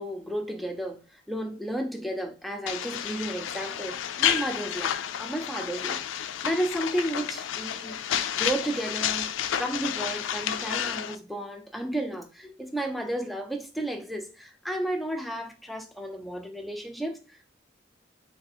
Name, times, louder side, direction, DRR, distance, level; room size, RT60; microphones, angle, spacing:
voice 1, 0.0-6.0 6.4-8.0 8.3-9.3 9.6-17.5, right 1 dB, ahead, 0.4 m, -33 dB
sound 1, 2.7-11.1, left 9 dB, 90° left, 0.4 m, -30 dB
3.3 x 2.6 x 4.2 m
head